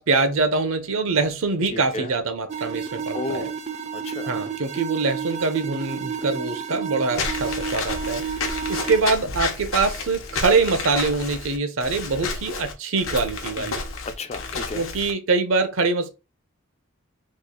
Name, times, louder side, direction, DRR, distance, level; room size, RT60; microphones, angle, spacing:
voice 1, 0.0-3.5 4.3-8.2 8.7-13.8 14.7-16.1, right 3 dB, 75° right, 0.7 m, -24 dB
voice 2, 1.7-2.1 3.1-3.5 3.9-4.3 13.6-14.9, left 3 dB, 30° left, 0.4 m, -33 dB
sound 1, 2.5-9.0, right 6 dB, 35° right, 0.4 m, -31 dB
Walk footsteps / Squeak, 7.1-15.1, left 4 dB, 70° left, 0.8 m, -31 dB
3.1 x 2.4 x 3.7 m
head